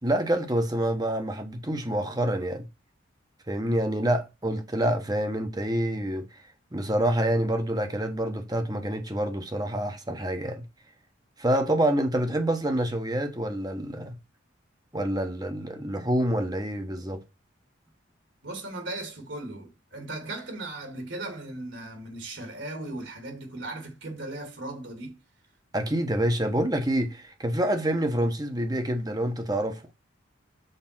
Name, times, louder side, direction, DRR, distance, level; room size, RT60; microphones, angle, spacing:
voice 1, 0.0-2.7 3.5-6.2 6.7-10.6 11.4-14.2 14.9-17.2 25.7-29.8, right 1 dB, 20° right, 1.1 m, -27 dB
voice 2, 18.4-25.2, right 2 dB, 65° right, 2.9 m, -37 dB
6.7 x 4.8 x 6.0 m
head